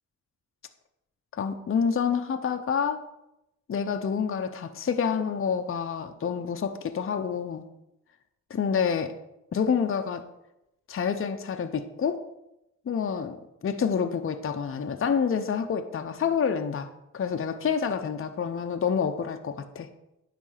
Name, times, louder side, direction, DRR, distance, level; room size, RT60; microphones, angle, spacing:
voice 1, 1.4-3.0 3.7-7.7 8.5-9.1 9.5-10.2 10.9-12.2 12.9-16.9 17.1-19.9, left 6 dB, 40° left, 6 dB, 0.7 m, -28 dB
9.8 x 3.4 x 5.6 m, 0.89 s
cardioid pair, 75°, 33 cm